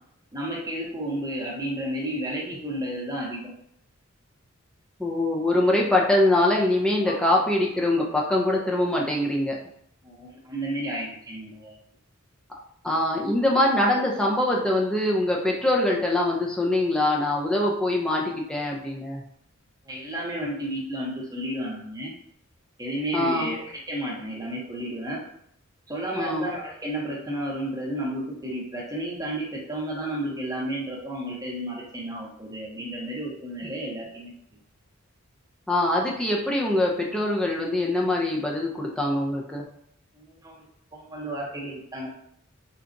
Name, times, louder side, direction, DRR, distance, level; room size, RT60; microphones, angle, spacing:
voice 1, 0.3-3.5 10.0-11.8 19.9-22.1 22.8-25.2 25.9-34.3 40.1-40.6 40.9-42.1, right 1 dB, 15° right, -3 dB, 0.8 m, -32 dB
voice 2, 5.0-9.6 12.8-19.2 23.1-23.6 26.2-26.5 35.7-39.6, left 1 dB, 5° left, -2 dB, 0.4 m, -23 dB
3.8 x 2.3 x 2.5 m, 0.71 s
head